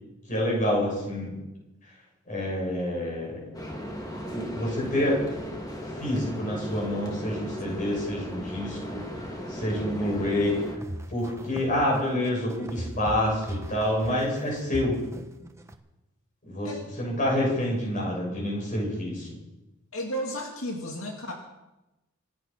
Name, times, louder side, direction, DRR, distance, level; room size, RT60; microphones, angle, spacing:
voice 1, 0.3-1.4 2.3-3.4 4.3-5.2 5.8-9.0 9.5-10.6 11.1-15.0 16.4-16.7 17.0-19.3, left 1 dB, 40° left, -3 dB, 7.4 m, -27 dB
sound 1, 3.5-10.8, equal, 20° left, 2.4 m, -36 dB
sound 2, 10.4-15.8, right 1 dB, 15° right, 1.0 m, -38 dB
voice 2, 19.9-21.3, equal, 85° left, 1 dB, 2.4 m, -33 dB
26.5 x 9.2 x 5.8 m, 0.99 s
head